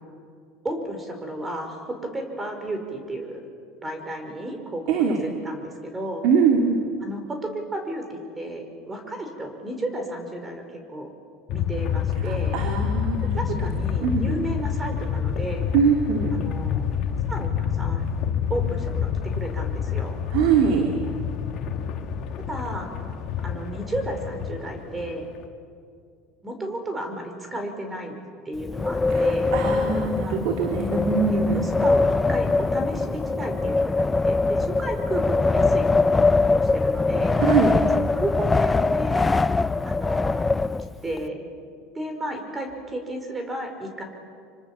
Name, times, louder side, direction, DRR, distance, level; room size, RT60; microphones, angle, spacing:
voice 1, 0.6-3.4 3.8-5.1 5.4-6.2 7.0-10.6 10.9-11.1 11.5-12.5 13.3-15.7 16.3-16.8 17.3-18.0 18.5-20.2 22.5-22.9 23.4-25.2 26.4-28.1 28.5-29.5 30.2-30.4 31.5-37.4 37.9-39.3 39.9-40.5 41.0-41.5 41.9-44.0, right 1 dB, 15° right, 5 dB, 5.4 m, -33 dB
voice 2, 4.9-5.2 6.2-6.8 12.2-13.4 14.0-14.4 15.7-16.4 20.3-20.9 29.1-31.6 37.3-37.8, right 6 dB, 65° right, 2 dB, 2.8 m, -22 dB
sound 1, 11.5-25.5, left 8 dB, 50° left, 2.4 m, -28 dB
Wind, 28.6-41.2, left 3 dB, 15° left, 0.6 m, -22 dB
26.0 x 25.0 x 7.5 m, 2.3 s
supercardioid pair, 105°, 0 cm